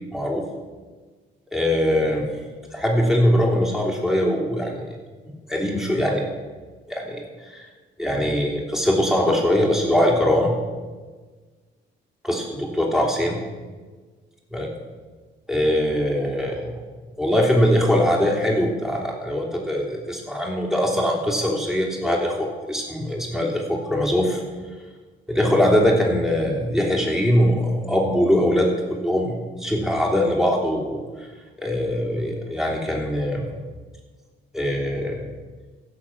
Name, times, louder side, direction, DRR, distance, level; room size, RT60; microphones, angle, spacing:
voice 1, 0.1-0.4 1.5-2.3 2.7-4.8 5.5-6.3 6.9-7.7 8.0-10.6 12.2-13.4 14.5-14.7 15.5-16.8 17.2-24.4 25.3-28.7 29.0-31.0 31.6-33.5 34.5-35.2, equal, ahead, -1 dB, 3.1 m, -22 dB
16.0 x 7.0 x 5.9 m, 1.4 s
cardioid pair, 90°, 20 cm